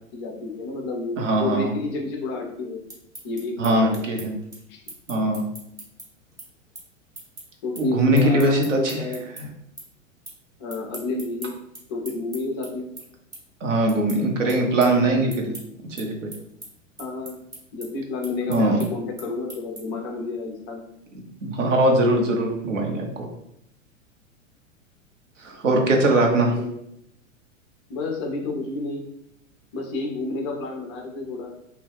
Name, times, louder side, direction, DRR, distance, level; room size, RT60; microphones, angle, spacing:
voice 1, 0.1-2.8 3.2-4.3 4.7-4.8 7.6-9.2 10.6-11.6 11.9-12.9 13.7-13.8 17.0-17.4 17.7-20.8 26.6-26.8 27.9-29.0 29.7-31.5, left 3 dB, 20° left, 1 dB, 0.3 m, -30 dB
voice 2, 1.2-1.7 3.6-4.3 5.1-5.4 7.8-9.0 9.4-9.5 13.6-15.6 16.0-16.3 18.5-18.9 21.4-23.3 25.4-26.5, right 1 dB, 65° right, 1 dB, 0.8 m, -21 dB
sound 1, 2.9-9.4 9.8-10.4 10.7-20.1, right 1 dB, 10° right, 0.6 m, -42 dB
2.3 x 2.2 x 3.3 m, 0.77 s
figure-of-eight pair, 100°, 40 cm